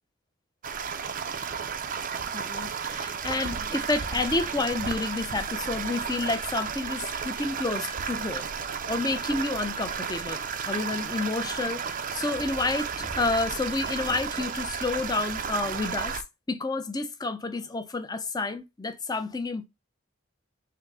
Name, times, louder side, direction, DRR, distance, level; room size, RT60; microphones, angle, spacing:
sound 1, 0.6-16.2, right 6 dB, 40° right, 0.5 m, -33 dB
voice 1, 2.3-8.4 8.9-16.2 16.5-19.6, left 3 dB, 20° left, 0.5 m, -30 dB
5.7 x 2.1 x 3.5 m
head